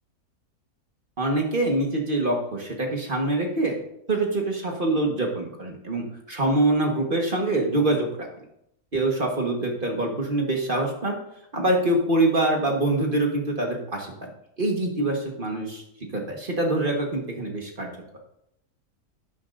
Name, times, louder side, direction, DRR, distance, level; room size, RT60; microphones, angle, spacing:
voice 1, 1.2-3.8 4.1-8.3 8.9-11.2 11.5-14.3 14.6-15.8 16.1-17.9, right 2 dB, 35° right, 1 dB, 1.5 m, -25 dB
11.5 x 9.8 x 2.6 m, 0.75 s
omnidirectional pair, 1.6 m